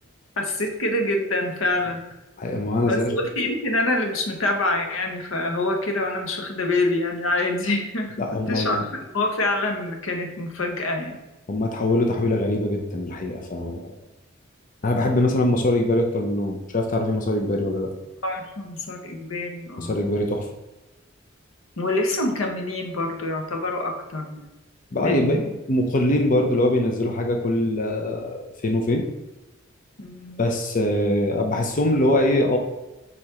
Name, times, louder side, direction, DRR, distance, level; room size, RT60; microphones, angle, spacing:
voice 1, 0.4-2.0 2.8-8.9 9.1-11.2 18.2-20.0 21.8-24.5 25.0-25.4 30.0-30.4, left 2 dB, 85° left, 3 dB, 1.0 m, -26 dB
voice 2, 2.4-3.1 8.2-8.8 11.5-13.9 14.8-17.9 19.8-20.5 24.9-29.0 30.4-32.6, left 1 dB, 40° left, 2 dB, 0.7 m, -23 dB
4.6 x 4.2 x 4.9 m, 1.0 s
head